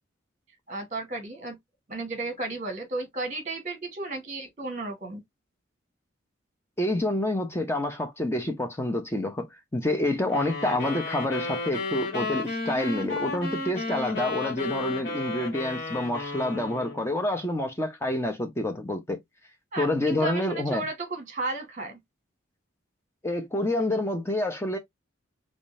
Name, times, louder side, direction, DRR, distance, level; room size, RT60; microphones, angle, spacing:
voice 1, 0.7-1.6 1.9-5.2 19.7-22.0, right 3 dB, 40° right, 1.3 m, -33 dB
voice 2, 6.8-9.5 9.7-19.2 19.8-20.9 23.2-24.8, left 1 dB, 15° left, 0.7 m, -28 dB
sound 1, 10.3-17.1, left 3 dB, 65° left, 2.1 m, -33 dB
3.7 x 3.1 x 2.5 m
head